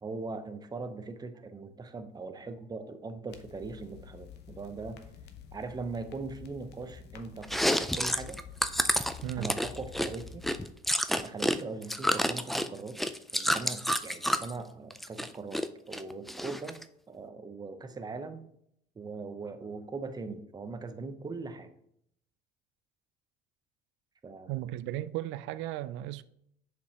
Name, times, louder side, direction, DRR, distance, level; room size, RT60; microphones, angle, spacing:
voice 1, 0.0-5.0 5.5-8.4 9.4-10.4 11.2-13.0 13.3-16.8 17.1-18.4 19.0-21.7 24.2-24.7, right 3 dB, 20° right, 0.7 m, -40 dB
sound 1, 3.3-10.7, left 7 dB, 55° left, 0.8 m, -49 dB
Chewing mastication, 7.4-11.6 11.8-14.5 14.9-15.7 15.9-16.8, equal, ahead, 0.3 m, -29 dB
voice 2, 9.2-9.5 24.5-26.2, right 14 dB, 70° right, 0.4 m, -35 dB
6.7 x 5.2 x 2.9 m
supercardioid pair, 95°, 20 cm